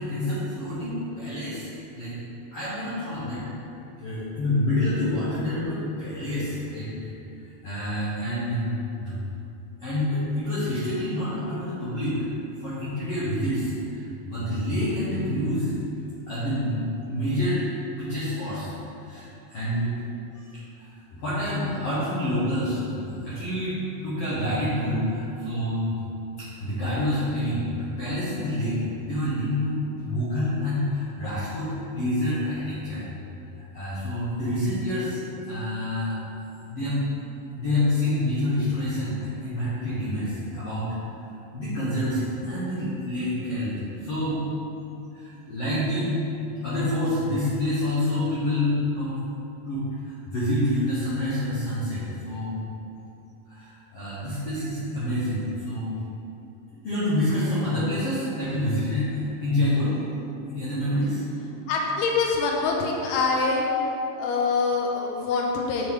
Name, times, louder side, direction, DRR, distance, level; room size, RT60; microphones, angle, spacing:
voice 1, 0.0-2.1 2.5-3.6 4.0-7.1 7.6-8.7 9.0-9.2 9.8-12.2 12.6-15.7 16.3-16.8 17.1-17.6 18.0-18.7 19.0-19.9 20.3-20.5 20.8-25.9 26.4-33.1 33.5-36.2 36.7-37.0 37.6-40.9 41.5-44.4 45.1-46.2 46.6-49.2 49.6-52.6 53.5-56.0 56.8-60.0 60.5-61.2 63.6-63.8, left 1 dB, 70° left, -12 dB, 1.4 m, -27 dB
voice 2, 61.7-63.7 64.2-65.9, left 4 dB, 90° left, -1 dB, 2.6 m, -24 dB
6.1 x 5.1 x 3.6 m, 2.8 s
omnidirectional pair, 4.4 m